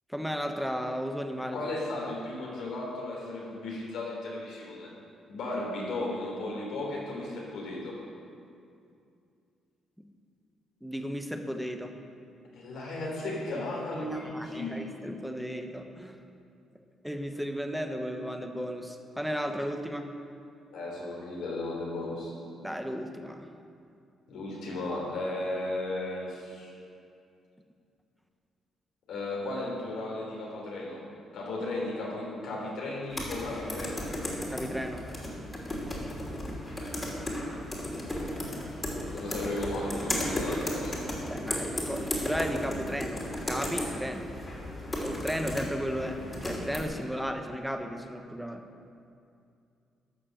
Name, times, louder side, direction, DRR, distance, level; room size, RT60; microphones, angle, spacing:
voice 1, 0.1-1.6 10.8-11.9 14.1-16.1 17.0-20.1 22.6-23.5 34.5-35.1 41.2-44.3 44.9-48.6, equal, ahead, 5 dB, 1.0 m, -34 dB
voice 2, 1.5-4.9 5.3-7.9 12.5-14.9 20.7-22.3 24.3-26.7 29.1-31.0 31.3-34.1 39.1-41.1, left 2 dB, 80° left, -3 dB, 3.3 m, -35 dB
sound 1, 33.1-46.8, left 1 dB, 25° left, 2.9 m, -35 dB
12.0 x 6.3 x 7.4 m, 2.4 s
cardioid pair, 90°, 0 cm